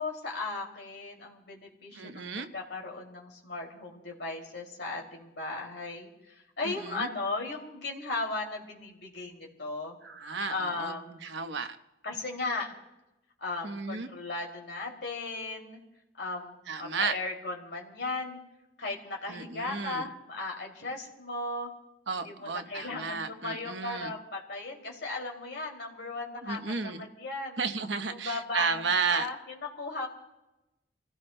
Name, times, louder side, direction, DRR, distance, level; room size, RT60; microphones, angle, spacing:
voice 1, 0.0-2.3 2.5-9.9 10.5-11.2 12.0-12.7 13.4-15.8 16.2-18.4 18.8-21.7 22.1-27.6 28.0-30.1, left 3 dB, 70° left, 0 dB, 2.6 m, -36 dB
voice 2, 1.9-2.5 6.6-7.1 10.0-11.8 13.6-14.1 16.7-17.1 19.3-20.1 22.1-24.2 26.4-27.1 27.6-29.3, right 5 dB, 75° right, 7 dB, 1.0 m, -33 dB
28.5 x 16.5 x 2.2 m, 0.94 s
head